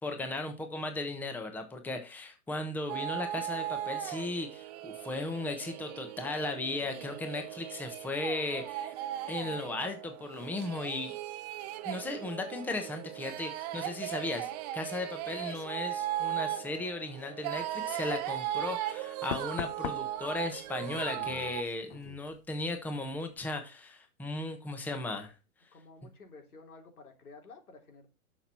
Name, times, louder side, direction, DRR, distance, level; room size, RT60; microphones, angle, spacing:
voice 1, 0.0-8.9 9.3-11.1 11.8-25.3, left 2 dB, 5° left, 6 dB, 1.1 m, -36 dB
sound 1, 2.9-21.6, right 13 dB, 30° right, 0.8 m, -38 dB
Knock, 18.2-18.5 19.3-22.8 23.0-23.4, left 11 dB, 40° left, 0.8 m, -43 dB
voice 2, 25.7-28.1, left 3 dB, 85° left, 4 dB, 3.9 m, -52 dB
11.5 x 6.4 x 4.4 m, 0.29 s
hypercardioid pair, 145°, 43 cm